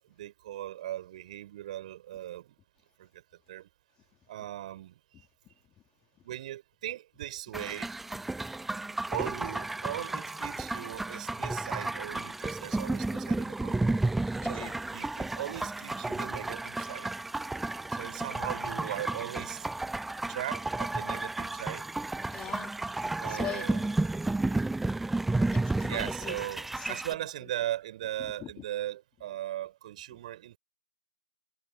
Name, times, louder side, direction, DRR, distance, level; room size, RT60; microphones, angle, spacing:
voice 1, 0.0-2.5 3.0-3.2 3.5-3.7 4.3-5.0 6.2-7.9 9.1-14.0 14.4-17.1 17.9-19.7 20.3-21.9 23.2-23.9 25.9-30.6, right 13 dB, 45° right, 6.4 m, -38 dB
sound 1, 7.5-27.1, right 2 dB, 5° right, 0.4 m, -32 dB
voice 2, 14.4-14.7 20.3-20.4 22.3-23.7 25.5-26.4 26.8-27.0 27.4-27.5 28.2-28.5 30.1-30.2, left 12 dB, 20° left, 3.0 m, -42 dB
figure-of-eight pair, 130°, 6 cm